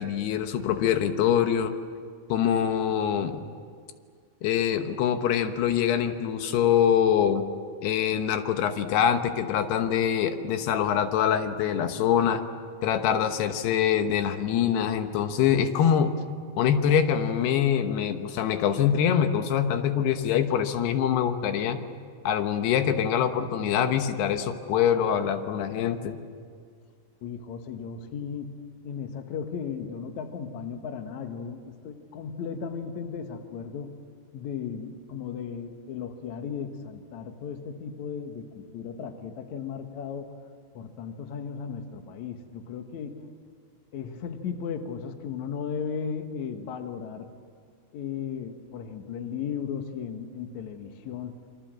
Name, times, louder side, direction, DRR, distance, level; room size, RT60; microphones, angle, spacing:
voice 1, 0.0-1.7 2.3-3.4 4.4-7.4 7.8-12.4 12.8-16.2 16.6-21.8 22.2-26.2, left 9 dB, 85° left, 8 dB, 3.2 m, -24 dB
voice 2, 27.2-34.0 34.3-40.4 40.7-43.3 43.9-47.3 47.9-51.4, left 6 dB, 55° left, 6 dB, 2.4 m, -36 dB
28.0 x 24.5 x 7.6 m, 2.1 s
omnidirectional pair, 4.6 m